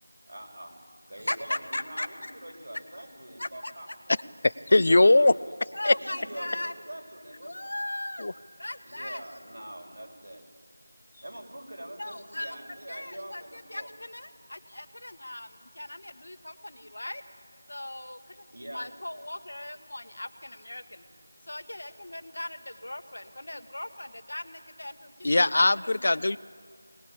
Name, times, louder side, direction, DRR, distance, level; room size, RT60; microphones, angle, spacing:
voice 1, 0.3-0.8 1.1-4.3 4.7-5.4 5.9-7.7 8.8-10.4 11.2-13.9 18.5-18.9, right 1 dB, 65° right, 1 dB, 6.0 m, -44 dB
voice 2, 1.2-2.3 3.4-4.0 5.7-6.7 7.4-8.3 8.6-9.2 12.0-12.6 12.9-17.2 17.7-21.0 21.5-25.5 25.8-26.2, left 1 dB, 65° left, 11 dB, 1.5 m, -38 dB
voice 3, 4.7-5.3 5.8-5.9 8.2-8.3 25.2-26.4, left 2 dB, 45° left, 20 dB, 0.5 m, -20 dB
21.0 x 20.0 x 8.7 m, 2.1 s
figure-of-eight pair, 170°, 0 cm